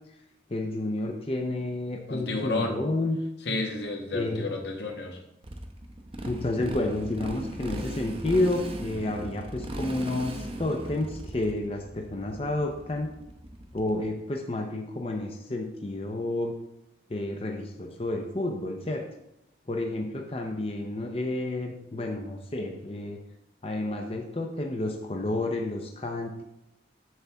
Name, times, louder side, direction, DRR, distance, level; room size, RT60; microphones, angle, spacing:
voice 1, 0.5-3.2 4.1-4.5 6.2-13.1 13.7-16.5 17.1-19.0 19.7-23.2 23.6-26.4, left 2 dB, 30° left, 2 dB, 0.6 m, -30 dB
voice 2, 2.1-2.8 3.5-5.2, left 2 dB, 75° left, 3 dB, 1.3 m, -31 dB
Motorcycle, 5.4-14.1, right 1 dB, 30° right, 0.7 m, -38 dB
7.8 x 7.0 x 3.5 m, 0.85 s
head